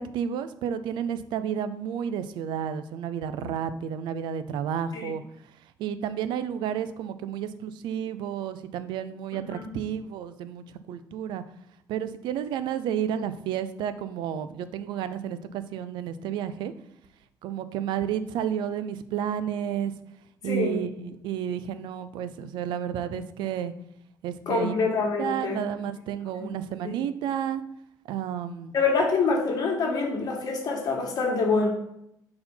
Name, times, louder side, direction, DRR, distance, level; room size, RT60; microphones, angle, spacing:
voice 1, 0.0-5.2 5.8-11.4 11.9-16.7 17.4-19.9 20.4-23.7 24.2-24.8 25.2-27.6 28.0-28.7, right 9 dB, 85° right, 12 dB, 0.4 m, -31 dB
voice 2, 20.5-20.8 24.5-25.6 26.8-26.9 28.7-31.7, left 4 dB, 55° left, 0 dB, 1.7 m, -25 dB
4.4 x 4.3 x 5.4 m, 0.77 s
cardioid pair, 125°, 8 cm